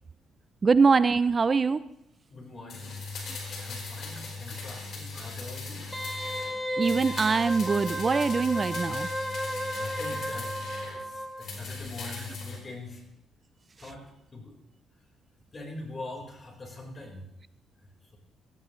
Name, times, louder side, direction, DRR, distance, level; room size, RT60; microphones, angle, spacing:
voice 1, 0.6-1.8 4.5-4.6 5.2-5.3 6.8-9.1, right 4 dB, 35° right, 15 dB, 0.4 m, -23 dB
voice 2, 2.3-3.3 3.6-5.9 9.7-13.0 13.8-14.6 15.5-17.2, left 2 dB, 35° left, 1 dB, 4.3 m, -43 dB
sound 1, 2.7-6.5 6.8-11.0 11.4-12.6 12.9-13.0, left 3 dB, 65° left, 4.4 m, -39 dB
Wind instrument woodwind instrument, 5.9-11.5 11.8-11.9, equal, ahead, 1.4 m, -34 dB
17.0 x 14.5 x 3.1 m, 0.85 s
cardioid pair, 90°, 0 cm